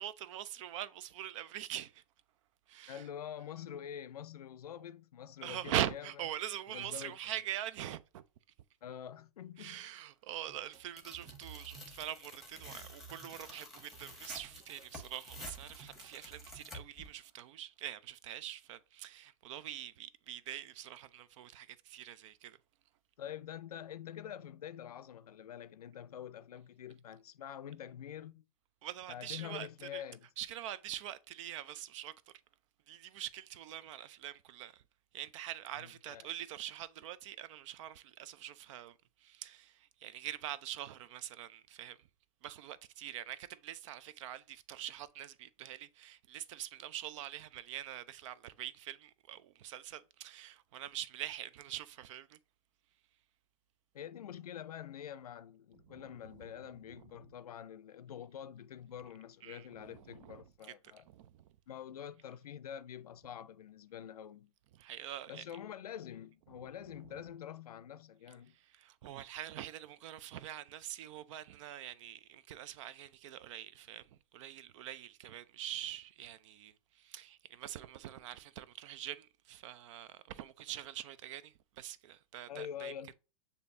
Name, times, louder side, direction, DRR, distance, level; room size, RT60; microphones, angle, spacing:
voice 1, 0.0-2.0 2.7-3.0 5.4-8.2 9.6-22.6 28.8-30.0 30.4-32.1 32.9-34.8 35.1-42.1 42.4-52.4 55.9-56.1 59.4-60.4 61.1-61.4 64.7-65.4 68.5-83.1, right 12 dB, 55° right, 0.4 m, -44 dB
voice 2, 2.9-6.1 6.7-7.2 8.8-9.8 23.2-28.4 29.1-30.3 35.8-36.3 53.9-61.0 61.7-64.5 65.3-68.5 82.5-83.1, left 9 dB, 85° left, 0.4 m, -46 dB
sound 1, 10.5-16.6, right 6 dB, 15° right, 0.6 m, -55 dB
Tearing, 11.0-17.1, left 1 dB, ahead, 1.4 m, -51 dB
6.7 x 2.7 x 2.6 m
hypercardioid pair, 115°, 19 cm